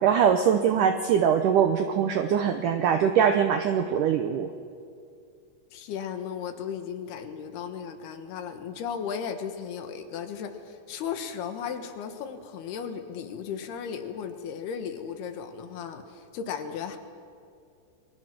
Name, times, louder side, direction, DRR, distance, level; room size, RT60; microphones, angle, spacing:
voice 1, 0.0-4.5, right 8 dB, 85° right, 7 dB, 1.8 m, -22 dB
voice 2, 5.7-17.0, left 7 dB, 70° left, 7 dB, 3.3 m, -35 dB
28.5 x 22.5 x 6.1 m, 2.3 s
omnidirectional pair, 4.9 m